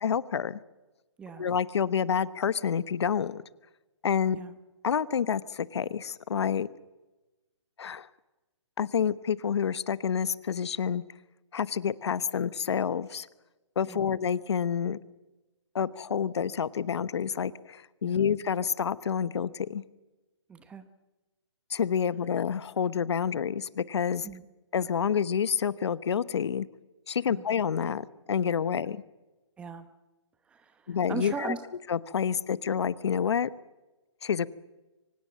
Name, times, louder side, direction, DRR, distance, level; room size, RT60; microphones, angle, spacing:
voice 1, 0.0-0.6 1.4-3.4 4.0-4.4 4.8-6.7 7.8-8.1 8.8-11.0 11.5-13.3 13.8-15.0 15.7-19.8 21.7-24.3 24.7-26.7 27.1-29.0 30.9-31.5 31.9-33.5 34.2-34.5, left 7 dB, 60° left, 17 dB, 1.0 m, -28 dB
voice 2, 20.5-20.9 24.2-24.4 27.3-27.5 29.6-29.9 30.5-31.6, right 5 dB, 5° right, 11 dB, 0.9 m, -39 dB
24.5 x 19.0 x 7.5 m, 1.1 s
hypercardioid pair, 160°, 16 cm